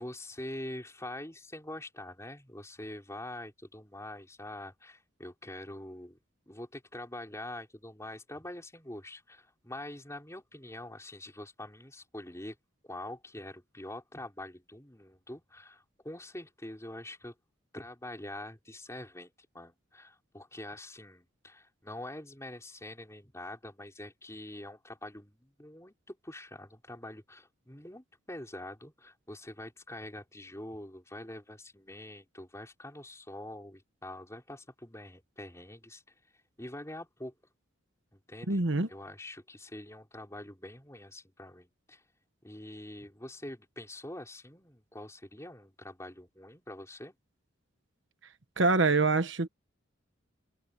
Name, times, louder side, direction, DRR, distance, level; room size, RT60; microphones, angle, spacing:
voice 1, 0.0-6.2 6.5-12.6 12.8-17.3 17.7-36.0 36.6-37.3 38.1-42.0 42.4-47.2, left 1 dB, 15° left, 5.3 m, -45 dB
voice 2, 38.5-38.9 48.6-49.5, right 3 dB, 65° right, 1.2 m, -25 dB
head